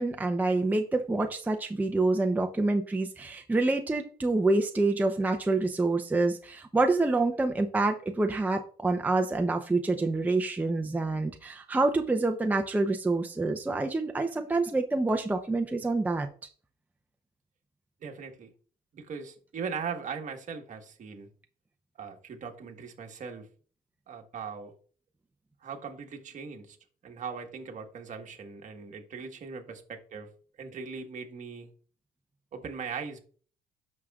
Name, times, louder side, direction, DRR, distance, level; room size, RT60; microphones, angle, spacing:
voice 1, 0.0-16.3, right 2 dB, 10° right, 4 dB, 0.6 m, -27 dB
voice 2, 18.0-18.5 18.9-21.3 22.0-23.5 24.1-24.7 25.6-26.8 27.0-30.3 30.6-31.7 32.5-33.2, right 6 dB, 45° right, 4 dB, 1.5 m, -39 dB
9.4 x 6.4 x 2.4 m, 0.43 s
cardioid pair, 110°, 17 cm